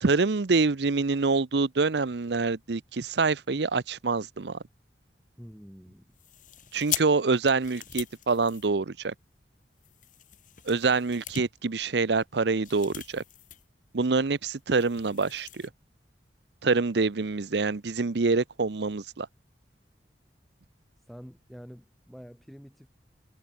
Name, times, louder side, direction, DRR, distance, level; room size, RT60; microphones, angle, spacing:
voice 1, 0.0-4.6 6.7-9.1 10.6-13.2 13.9-15.7 16.6-19.3, right 4 dB, 75° right, 0.7 m, -26 dB
voice 2, 5.4-6.0 21.1-22.9, equal, ahead, 4.2 m, -47 dB
sound 1, 6.1-9.2 9.8-13.7 14.0-14.1 14.4-15.7, left 12 dB, 45° left, 3.2 m, -40 dB
head